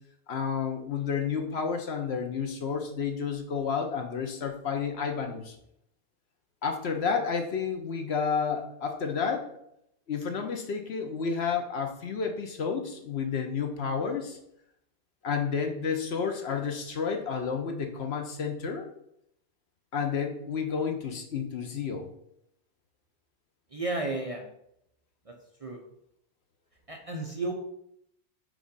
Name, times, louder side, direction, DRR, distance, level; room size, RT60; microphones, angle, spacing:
voice 1, 0.3-5.6 6.6-9.5 10.1-14.4 15.2-18.9 19.9-22.1, left 6 dB, 60° left, 4 dB, 1.0 m, -31 dB
voice 2, 23.7-24.4 25.3-25.4 25.6-25.8 26.9-27.5, right 2 dB, 35° right, 1 dB, 0.7 m, -32 dB
5.0 x 3.7 x 5.3 m, 0.75 s
omnidirectional pair, 1.3 m